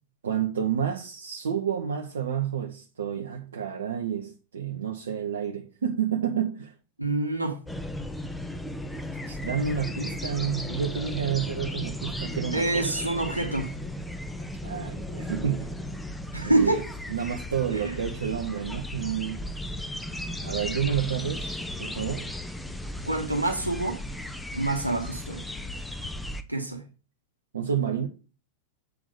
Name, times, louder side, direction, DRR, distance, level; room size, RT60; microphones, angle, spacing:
voice 1, 0.2-6.7 9.3-13.0 14.6-15.7 16.4-16.8 17.1-19.4 20.4-22.3 27.5-28.1, right 8 dB, 65° right, 0.8 m, -30 dB
voice 2, 7.0-7.6 12.5-13.8 16.3-16.8 17.8-17.9 23.1-24.0 24.5-25.4 26.5-26.8, right 2 dB, 85° right, 1.5 m, -26 dB
sound 1, 7.7-26.4, left 1 dB, 5° left, 0.7 m, -35 dB
7.9 x 3.6 x 6.6 m
figure-of-eight pair, 90°, 0 cm